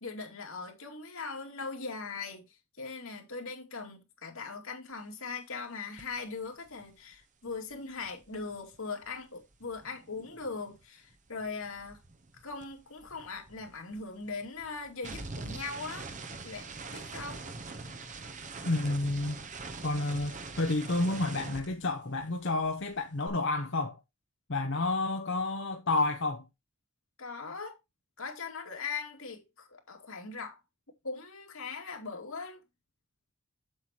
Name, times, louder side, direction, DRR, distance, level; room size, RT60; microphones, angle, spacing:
voice 1, 0.0-2.5 2.8-12.0 12.4-16.1 16.4-17.4 27.2-27.8 28.2-30.6 31.0-32.6, left 4 dB, 85° left, 2.6 m, -40 dB
sound 1, 6.0-6.2 6.5-10.8 11.1-22.4 22.6-23.3, right 3 dB, 35° right, 1.0 m, -44 dB
voice 2, 18.6-19.4 19.8-23.9 24.5-26.4, left 2 dB, 60° left, 0.9 m, -30 dB
8.0 x 7.5 x 3.0 m
head